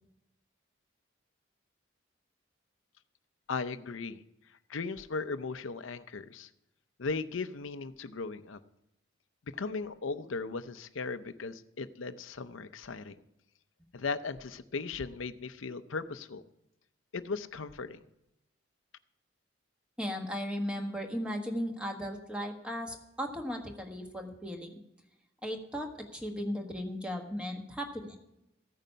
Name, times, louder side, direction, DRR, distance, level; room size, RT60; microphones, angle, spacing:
voice 1, 3.5-4.2 4.5-6.5 7.0-8.6 9.5-13.2 13.9-16.4 17.1-18.0, left 4 dB, 80° left, 12 dB, 0.6 m, -37 dB
voice 2, 20.0-24.7 25.4-28.2, equal, 5° right, 3 dB, 1.2 m, -36 dB
15.0 x 9.2 x 5.6 m, 0.87 s
head